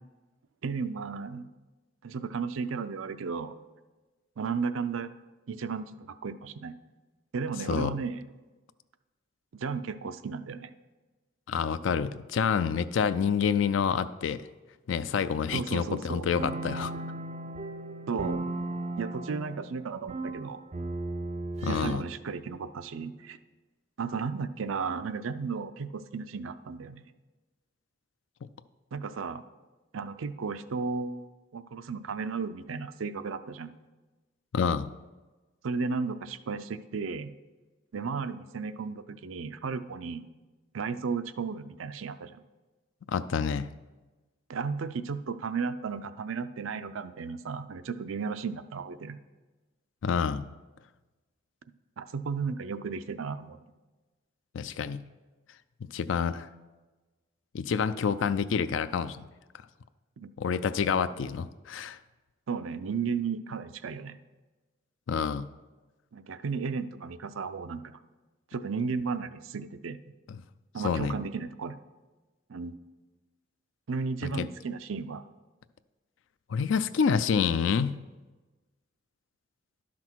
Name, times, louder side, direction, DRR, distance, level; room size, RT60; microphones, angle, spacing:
voice 1, 0.6-1.5 2.0-3.5 4.4-5.1 5.5-6.7 7.3-8.2 9.5-10.7 15.5-16.3 18.1-18.5 19.0-20.6 21.7-23.4 24.0-27.0 28.9-29.4 29.9-33.7 35.6-37.3 37.9-40.3 40.7-42.4 44.5-49.2 52.0-53.6 60.2-60.3 62.5-64.2 66.1-67.9 68.5-70.0 70.7-71.8 72.5-72.8 73.9-75.2, right 5 dB, 90° right, 11 dB, 0.5 m, -34 dB
voice 2, 11.5-14.4 14.9-16.9 21.6-22.0 34.5-34.9 43.1-43.7 50.0-50.5 54.5-55.0 55.9-56.5 57.5-59.3 60.4-62.0 65.1-65.5 70.8-71.2 74.2-74.5 76.5-78.0, left 6 dB, 75° left, 13 dB, 0.4 m, -28 dB
sound 1, 16.4-22.3, right 2 dB, 35° right, 0.4 m, -36 dB
11.5 x 6.0 x 4.5 m, 1.2 s
head